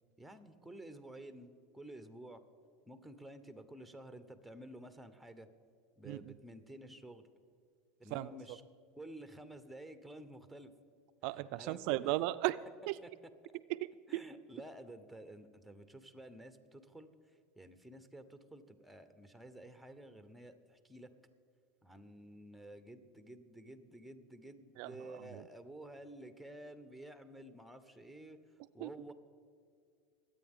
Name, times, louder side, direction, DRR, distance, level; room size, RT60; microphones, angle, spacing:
voice 1, 0.2-2.4 2.9-5.5 6.0-7.3 8.0-8.6 9.0-10.7 11.3-12.0 13.0-13.1 14.1-21.1 21.8-29.1, right 1 dB, ahead, 9 dB, 1.0 m, -52 dB
voice 2, 6.0-6.4 8.1-8.6 11.2-13.0 13.7-14.2 24.8-25.5 28.8-28.9, right 17 dB, 65° right, 14 dB, 0.4 m, -37 dB
23.0 x 8.8 x 3.7 m, 2.2 s
supercardioid pair, 110°, 0 cm